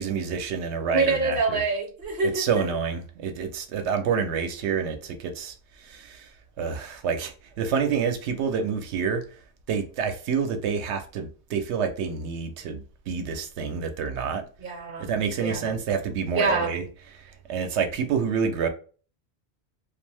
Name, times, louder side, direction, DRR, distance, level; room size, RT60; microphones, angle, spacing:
voice 1, 0.0-1.6 2.2-6.3 6.6-9.2 9.7-14.4 15.0-16.8 17.1-18.7, right 6 dB, 85° right, 0.9 m, -28 dB
voice 2, 0.9-2.6 14.6-15.1 15.4-15.6 16.3-16.7, right 4 dB, 60° right, 0.8 m, -25 dB
2.6 x 2.3 x 3.2 m
omnidirectional pair, 1.1 m